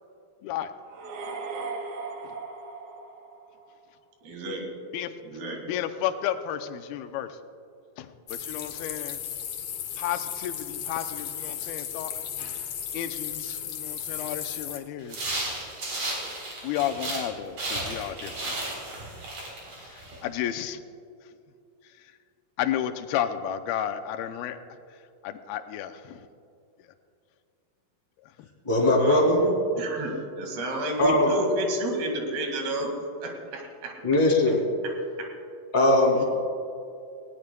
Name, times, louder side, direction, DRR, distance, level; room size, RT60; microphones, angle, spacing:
sound 1, 0.8-3.9, right 4 dB, 75° right, 2.9 m, -37 dB
voice 1, 4.2-4.8 5.2-5.7 28.9-32.9 33.2-34.0 34.8-34.9 35.2-35.3, right 1 dB, 90° right, 1 dB, 4.1 m, -31 dB
voice 2, 4.9-5.4 5.7-7.4 8.0-9.2 10.0-12.1 12.9-15.3 16.6-18.9 19.8-20.8 21.8-22.1 22.6-24.8 25.2-26.3 28.4-28.5, left 10 dB, 85° left, 9 dB, 2.5 m, -32 dB
sound 2, 8.3-14.8, left 9 dB, 65° left, 1.8 m, -35 dB
sound 3, 15.1-17.3 17.6-20.2, right 2 dB, 50° right, 4.6 m, -34 dB
voice 3, 28.6-29.4 31.0-31.3 34.0-34.6 35.7-36.2, left 1 dB, 10° left, -2 dB, 1.8 m, -20 dB
19.5 x 17.0 x 2.2 m, 2.5 s
omnidirectional pair, 4.3 m